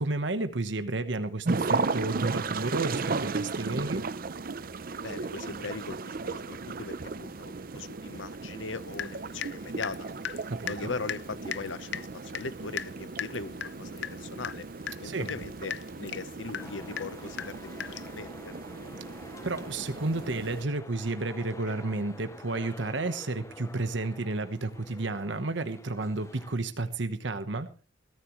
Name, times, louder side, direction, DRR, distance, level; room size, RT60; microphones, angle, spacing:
voice 1, 0.0-4.0 10.5-10.9 15.0-15.3 19.4-27.7, right 2 dB, 70° right, 9 dB, 1.2 m, -31 dB
sound 1, 1.4-20.6, right 4 dB, 50° right, 0.7 m, -35 dB
voice 2, 5.0-10.1 10.7-14.7 15.0-17.6 17.9-18.3 21.7-21.8, left 3 dB, 85° left, 15 dB, 1.0 m, -39 dB
Water tap faucet / Drip, 8.9-9.6 9.8-18.2, left 8 dB, 65° left, 0.7 m, -38 dB
sound 2, 16.6-26.6, left 2 dB, 15° left, 0.8 m, -49 dB
21.5 x 14.0 x 3.2 m, 0.35 s
head